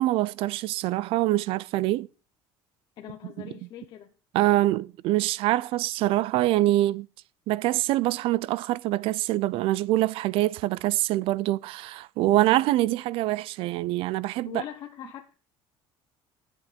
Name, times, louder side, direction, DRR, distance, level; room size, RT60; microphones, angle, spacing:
voice 1, 0.0-2.1 3.4-3.5 4.3-7.1 7.5-14.6, right 16 dB, 60° right, 0.5 m, -25 dB
voice 2, 3.0-4.1 14.4-15.3, left 11 dB, 45° left, 1.1 m, -41 dB
10.5 x 8.4 x 5.1 m
cardioid pair, 155°, 11 cm